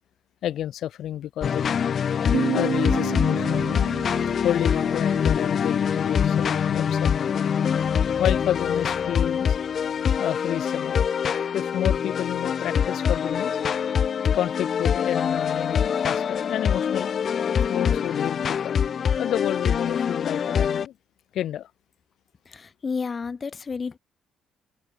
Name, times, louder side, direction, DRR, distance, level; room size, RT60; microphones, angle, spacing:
voice 1, 0.4-1.8 2.5-3.8 4.4-7.3 8.2-9.6 10.2-11.1 11.5-13.6 14.3-17.1 17.7-18.8 19.2-20.9 21.3-21.7, left 11 dB, 70° left, 4.9 m, -30 dB
sound 1, 1.4-20.9, left 7 dB, 50° left, 0.6 m, -24 dB
Piano, 2.3-5.8, right 10 dB, 65° right, 4.8 m, -32 dB
voice 2, 22.5-24.0, left 5 dB, 35° left, 2.0 m, -31 dB
cardioid pair, 85°, 0 cm